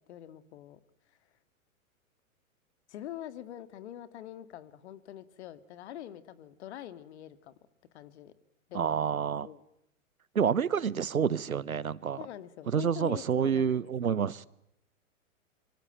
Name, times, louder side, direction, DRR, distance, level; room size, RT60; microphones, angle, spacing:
voice 1, 0.1-0.8 2.9-7.5 7.9-8.3 8.7-9.0 9.4-9.6 12.2-14.2, left 12 dB, 50° left, 2.1 m, -44 dB
voice 2, 8.7-9.5 10.3-12.2 12.7-14.5, right 7 dB, 80° right, 1.1 m, -28 dB
26.0 x 25.0 x 9.3 m
figure-of-eight pair, 110°, 42 cm